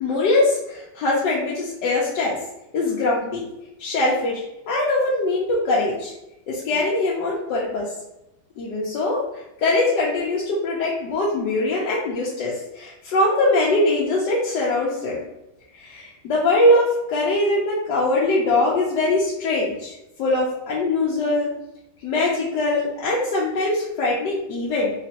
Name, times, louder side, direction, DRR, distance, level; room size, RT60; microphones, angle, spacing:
voice 1, 0.0-2.3 2.7-3.4 3.8-6.1 6.5-7.9 8.6-9.2 9.6-15.2 15.7-21.5 22.0-24.9, left 2 dB, 80° left, -5 dB, 1.3 m, -22 dB
3.4 x 3.0 x 2.8 m, 0.90 s
omnidirectional pair, 1.9 m